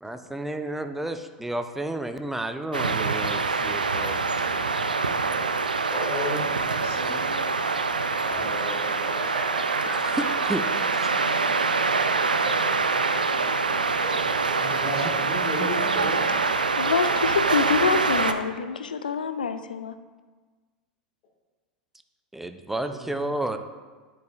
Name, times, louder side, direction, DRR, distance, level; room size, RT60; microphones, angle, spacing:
voice 1, 0.0-4.6 10.0-10.6 10.9-11.1 15.6-15.7 16.0-16.1 22.3-23.6, right 1 dB, 5° right, 7 dB, 0.4 m, -32 dB
sound 1, 2.7-18.3, right 4 dB, 80° right, 0.3 m, -25 dB
voice 2, 5.9-7.2 8.2-9.3, left 2 dB, 45° left, -3 dB, 1.8 m, -35 dB
Laughter, 7.0-16.0, right 3 dB, 25° right, 1.0 m, -39 dB
voice 3, 14.6-16.3 22.9-23.3, left 1 dB, 15° left, -3 dB, 2.0 m, -34 dB
voice 4, 16.7-20.0, left 5 dB, 75° left, 10 dB, 0.4 m, -26 dB
10.5 x 4.6 x 2.4 m, 1.4 s
figure-of-eight pair, 85°, 5 cm